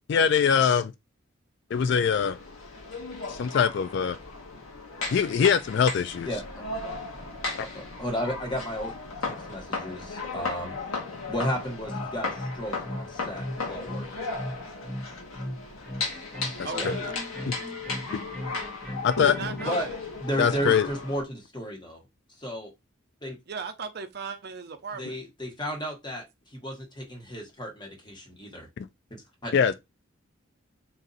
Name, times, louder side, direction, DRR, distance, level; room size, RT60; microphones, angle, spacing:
voice 1, 0.1-0.9 1.7-2.4 3.3-4.2 5.1-6.3 16.8-16.9 18.1-18.2 19.0-19.3 20.4-20.9 28.8-28.9 29.5-29.7, left 7 dB, 55° left, 0.3 m, -22 dB
sound 1, 1.7-21.2, left 3 dB, 90° left, 1.3 m, -36 dB
voice 2, 7.7-8.9 9.2-10.7 11.3-14.3 16.7-16.9 19.6-19.9 20.2-22.0 22.4-22.7 23.2-23.4 25.0-28.7 29.1-29.5, equal, 20° left, 1.2 m, -33 dB
sound 2, 11.9-19.9, equal, 5° left, 0.9 m, -38 dB
voice 3, 16.6-17.2 19.2-20.0 23.5-25.2, right 4 dB, 50° right, 0.6 m, -36 dB
3.8 x 2.6 x 4.0 m
head